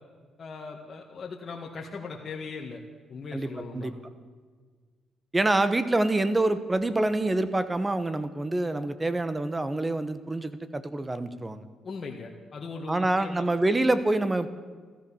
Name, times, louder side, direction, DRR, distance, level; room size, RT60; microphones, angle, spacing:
voice 1, 0.4-2.8 3.1-3.9 11.8-13.5, left 4 dB, 45° left, -1 dB, 1.9 m, -39 dB
voice 2, 5.3-11.6 12.9-14.5, right 2 dB, 20° right, 13 dB, 1.2 m, -26 dB
14.5 x 13.5 x 7.2 m, 1.5 s
cardioid pair, 90°, 0 cm